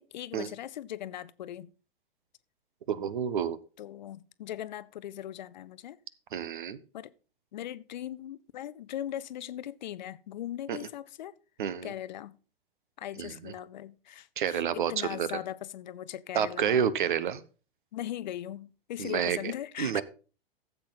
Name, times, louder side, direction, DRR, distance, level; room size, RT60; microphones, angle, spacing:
voice 1, 0.0-1.7 3.8-6.0 6.9-7.1 7.5-11.3 11.8-12.4 13.0-16.9 17.9-20.0, left 12 dB, 50° left, 0.6 m, -39 dB
voice 2, 2.9-3.6 6.3-6.8 10.7-10.8 11.6-11.9 13.2-13.5 14.4-15.4 16.3-17.4 19.0-19.4 19.8-20.0, right 8 dB, 55° right, 1.0 m, -29 dB
13.5 x 8.0 x 3.9 m
figure-of-eight pair, 105°, 29 cm